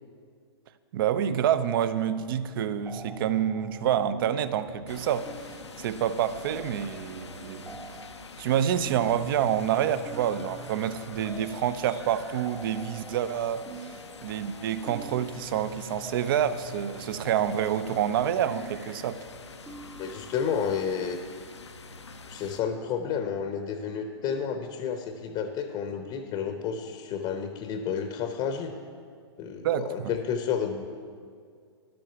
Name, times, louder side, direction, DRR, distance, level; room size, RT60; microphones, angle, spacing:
voice 1, 0.9-5.3 5.8-7.8 8.4-13.7 14.2-19.2 29.6-30.1, right 9 dB, 50° right, 0.6 m, -27 dB
sound 1, 1.7-2.3 2.5-20.8, right 2 dB, 10° right, 0.7 m, -46 dB
sound 2, 4.9-22.6, left 4 dB, 85° left, 0.7 m, -46 dB
voice 2, 20.0-21.2 22.3-28.7 29.4-30.9, left 7 dB, 35° left, 0.8 m, -31 dB
11.5 x 7.8 x 5.8 m
figure-of-eight pair, 105°, 14 cm